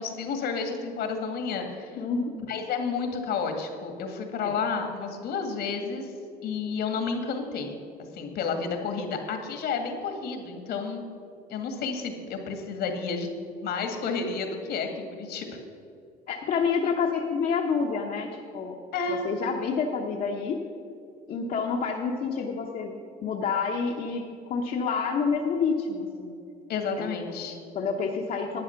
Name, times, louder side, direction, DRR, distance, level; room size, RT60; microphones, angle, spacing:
voice 1, 0.0-2.0 2.5-6.1 6.4-7.8 8.1-11.0 11.5-13.3 13.6-15.6 18.9-19.2 26.7-27.6, left 5 dB, 75° left, 5 dB, 2.0 m, -31 dB
voice 2, 1.9-2.3 4.4-4.5 16.3-18.8 19.1-20.6 21.3-22.9 23.2-26.4 27.0-27.5 27.7-28.6, left 5 dB, 55° left, 0 dB, 1.1 m, -28 dB
11.5 x 9.3 x 5.9 m, 2.4 s
cardioid pair, 110°, 17 cm